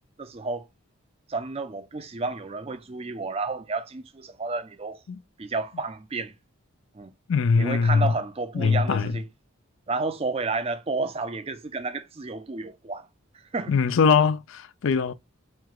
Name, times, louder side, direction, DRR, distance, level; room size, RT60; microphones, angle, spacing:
voice 1, 0.2-0.7 1.3-5.0 5.4-6.3 6.9-7.1 7.6-9.2 9.9-13.1 13.5-13.7, right 3 dB, 30° right, 0.4 m, -31 dB
voice 2, 7.3-8.1 8.5-9.2 13.7-15.1, left 5 dB, 65° left, 0.4 m, -22 dB
4.5 x 2.2 x 3.8 m
head